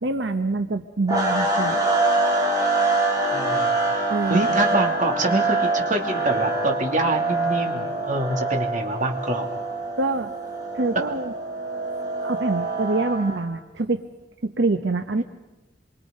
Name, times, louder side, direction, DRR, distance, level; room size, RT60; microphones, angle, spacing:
voice 1, 0.0-1.8 4.1-4.5 10.0-10.3 10.7-11.3 12.2-14.0 14.4-15.2, right 3 dB, 80° right, 8 dB, 0.9 m, -25 dB
sound 1, 1.1-13.4, right 2 dB, 20° right, 5.0 m, -25 dB
voice 2, 3.3-3.8 4.3-9.5, right 2 dB, 45° right, 3 dB, 2.7 m, -25 dB
26.5 x 24.0 x 5.3 m, 1.1 s
head